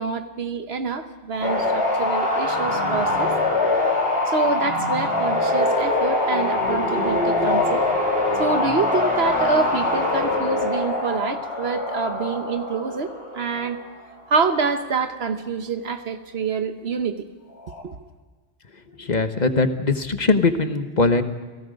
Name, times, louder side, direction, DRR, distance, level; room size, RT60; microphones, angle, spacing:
voice 1, 0.0-3.3 4.3-7.8 8.3-13.8 14.3-17.2 17.8-18.0, right 5 dB, 75° right, 8 dB, 1.3 m, -26 dB
sound 1, 1.4-13.8 17.6-17.8, left 2 dB, 70° left, 3.6 m, -23 dB
voice 2, 18.9-21.2, left 3 dB, 45° left, 8 dB, 1.4 m, -21 dB
29.5 x 18.0 x 5.2 m, 1.3 s
omnidirectional pair, 1.1 m